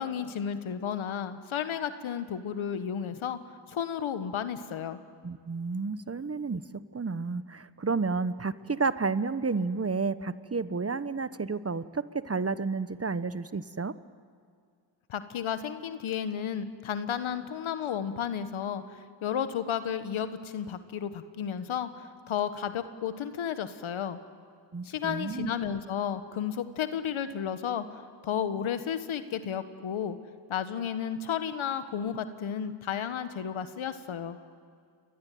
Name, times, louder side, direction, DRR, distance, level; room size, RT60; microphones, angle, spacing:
voice 1, 0.0-3.4 3.7-5.0 15.1-24.2 24.8-30.2 30.5-34.4, left 8 dB, 90° left, 11 dB, 1.4 m, -33 dB
voice 2, 5.2-6.6 6.9-13.9 24.7-25.5, right 4 dB, 30° right, 14 dB, 1.1 m, -31 dB
28.5 x 22.0 x 9.3 m, 2.2 s
cardioid pair, 50°, 47 cm